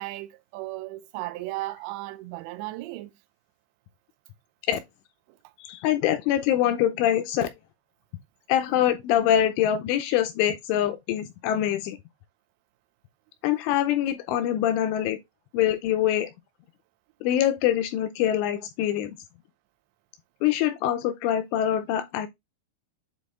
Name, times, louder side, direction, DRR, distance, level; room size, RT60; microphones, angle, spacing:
voice 1, 0.0-3.1, right 18 dB, 90° right, 2.6 m, -35 dB
voice 2, 5.6-7.5 8.5-12.0 13.4-15.2 15.5-16.3 17.2-19.2 20.4-22.3, left 11 dB, 85° left, 3.0 m, -24 dB
8.1 x 4.3 x 3.5 m
omnidirectional pair, 5.8 m